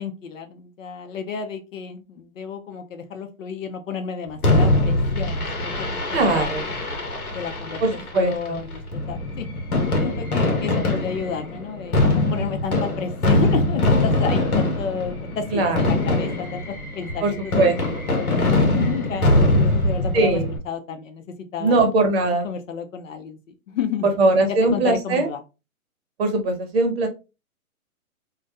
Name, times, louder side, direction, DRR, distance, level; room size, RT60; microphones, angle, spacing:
voice 1, 0.0-6.9 7.3-7.8 8.1-9.5 10.0-16.6 17.0-17.7 18.3-21.2 21.5-21.8 22.4-23.4 23.7-24.0 24.7-25.4, left 6 dB, 60° left, 6 dB, 0.6 m, -31 dB
Fireworks, 4.4-20.6, left 2 dB, 90° left, 0.9 m, -22 dB
voice 2, 6.1-6.6 7.8-8.6 15.5-15.8 17.2-17.3 17.6-17.8 20.1-20.5 21.6-22.5 24.0-25.3 26.2-27.1, right 2 dB, 45° right, 4 dB, 0.8 m, -20 dB
2.2 x 2.1 x 2.7 m, 0.29 s
hypercardioid pair, 130°, 43 cm